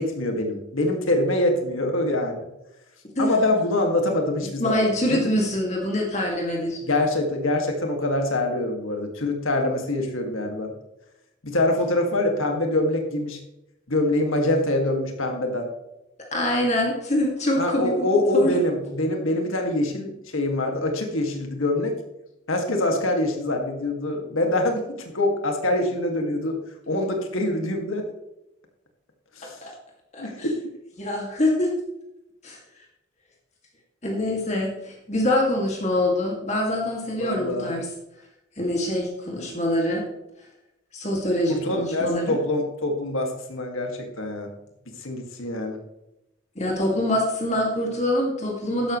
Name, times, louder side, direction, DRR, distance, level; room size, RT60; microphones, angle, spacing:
voice 1, 0.0-2.4 3.2-5.3 6.8-10.7 11.4-13.4 13.9-15.7 17.6-21.9 22.5-26.6 26.9-28.0 29.4-29.6 30.2-30.4 37.2-37.7 41.5-44.5 45.0-45.8, left 1 dB, 85° left, 3 dB, 2.2 m, -24 dB
voice 2, 4.6-6.8 16.3-18.0 18.3-18.5 29.6-29.7 30.1-30.5 31.0-31.7 32.4-32.6 34.0-37.9 38.6-40.0 40.9-42.4 46.6-49.0, left 1 dB, 35° left, -1 dB, 2.3 m, -24 dB
12.5 x 11.0 x 3.2 m, 0.90 s
head